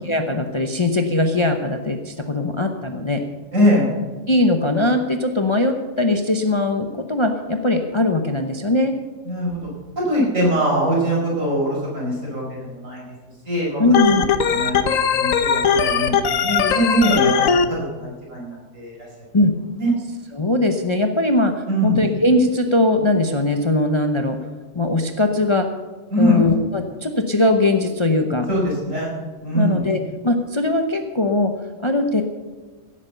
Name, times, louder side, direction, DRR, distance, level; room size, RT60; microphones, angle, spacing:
voice 1, 0.1-3.2 4.3-9.0 13.8-14.3 19.3-19.5 20.3-24.4 24.7-25.7 26.2-28.5 28.9-29.1 29.5-31.5 31.8-32.2, left 2 dB, 25° left, 6 dB, 0.8 m, -20 dB
voice 2, 3.5-3.9 9.3-9.6 10.0-13.0 13.5-13.8 14.1-19.0 19.8-19.9 21.7-22.0 26.1-26.4 28.5-29.1 29.4-29.9, equal, 70° right, -3 dB, 5.2 m, -22 dB
Organ, 13.9-17.7, left 6 dB, 75° left, 1.3 m, -19 dB
16.5 x 8.5 x 6.8 m, 1.3 s
omnidirectional pair, 1.4 m